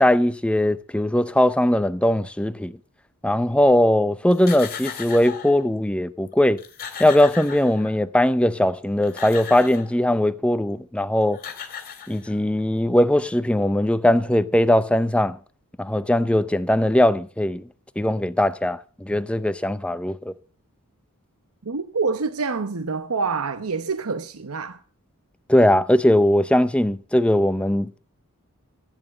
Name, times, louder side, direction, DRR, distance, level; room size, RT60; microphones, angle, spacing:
voice 1, 0.0-2.7 3.2-6.6 7.0-11.4 12.1-15.4 15.8-17.6 18.0-20.3 25.5-28.0, left 1 dB, 5° left, 0.6 m, -20 dB
sound 1, 4.3-5.6 6.3-6.4 6.6-8.1 8.8-10.0 11.0-11.1 11.3-12.6, left 7 dB, 40° left, 2.3 m, -37 dB
voice 2, 21.6-24.8, right 4 dB, 75° right, 0.9 m, -26 dB
14.5 x 9.2 x 6.5 m
head